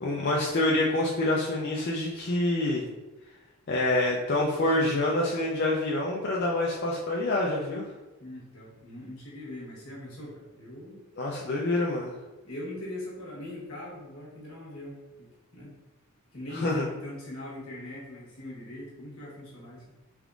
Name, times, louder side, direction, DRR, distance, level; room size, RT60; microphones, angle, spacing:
voice 1, 0.0-2.8 3.7-7.9 11.2-12.1 16.5-16.8, left 2 dB, 50° left, -3 dB, 0.4 m, -26 dB
voice 2, 8.2-11.0 12.4-15.7 16.3-19.9, left 1 dB, 75° left, -5 dB, 1.2 m, -41 dB
3.5 x 3.5 x 2.4 m, 1.1 s
head